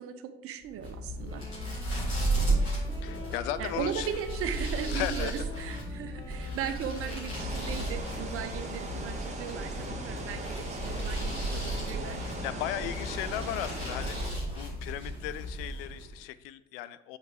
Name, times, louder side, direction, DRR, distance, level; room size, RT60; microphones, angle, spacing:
voice 1, 0.0-1.4 3.6-12.2, right 8 dB, 45° right, 8 dB, 0.8 m, -37 dB
sound 1, 0.7-16.2, right 1 dB, 85° left, 2.8 m, -34 dB
sound 2, 1.2-8.3, left 1 dB, 10° left, 1.4 m, -47 dB
voice 2, 3.0-4.1 4.9-5.5 10.5-10.6 12.4-14.2 14.5-17.2, left 13 dB, 65° left, 14 dB, 0.4 m, -36 dB
sound 3, 7.3-14.3, right 2 dB, 20° right, 1.4 m, -39 dB
5.9 x 4.9 x 4.9 m, 0.91 s
figure-of-eight pair, 55°, 31 cm